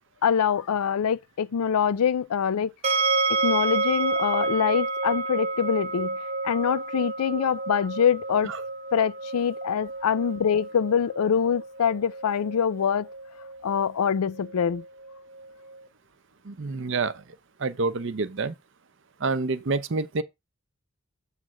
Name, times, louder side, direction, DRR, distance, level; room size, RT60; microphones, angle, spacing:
voice 1, 0.2-2.7 3.3-6.2 6.4-8.5 8.9-13.1 13.6-14.8, left 7 dB, 80° left, 0.4 m, -24 dB
sound 1, 2.8-15.8, right 3 dB, 30° right, 0.8 m, -30 dB
voice 2, 16.4-17.1 17.6-18.5 19.2-20.2, right 3 dB, 55° right, 0.6 m, -27 dB
7.6 x 3.3 x 6.1 m
head